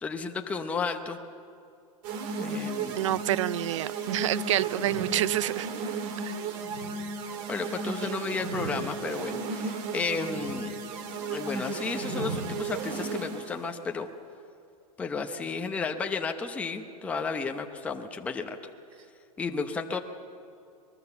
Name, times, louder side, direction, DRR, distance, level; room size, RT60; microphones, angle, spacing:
voice 1, 0.0-1.2 2.4-3.2 7.5-10.7 11.3-14.1 15.0-18.6 19.4-20.0, left 4 dB, 5° left, 4 dB, 0.8 m, -33 dB
sound 1, 2.0-13.6, right 4 dB, 35° right, 1.8 m, -34 dB
voice 2, 3.0-5.7 6.2-6.4 8.0-8.1, right 14 dB, 55° right, 19 dB, 0.4 m, -28 dB
24.0 x 21.5 x 7.0 m, 2.5 s
supercardioid pair, 165°, 19 cm